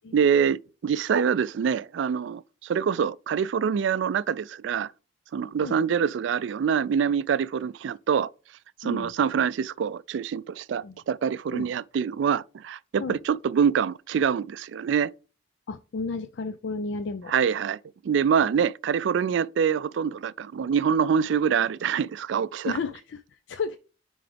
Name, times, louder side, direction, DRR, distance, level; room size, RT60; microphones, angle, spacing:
voice 1, 0.1-4.9 5.3-8.3 8.8-15.1 17.3-17.8 18.0-22.8, right 7 dB, 70° right, 0.3 m, -25 dB
voice 2, 15.7-17.3 22.6-23.8, left 4 dB, 65° left, 0.4 m, -32 dB
9.6 x 3.8 x 3.4 m
head